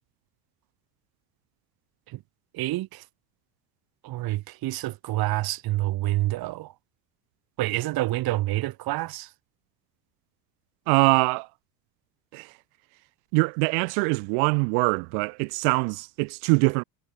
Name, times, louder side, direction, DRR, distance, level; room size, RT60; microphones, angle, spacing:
voice 1, 2.5-3.0 4.0-6.7 7.6-9.3, right 17 dB, 50° right, 1.5 m, -27 dB
voice 2, 10.9-11.5 12.3-12.5 13.3-16.8, right 40 dB or more, 70° right, 1.4 m, -23 dB
supercardioid pair, 100°, 46 cm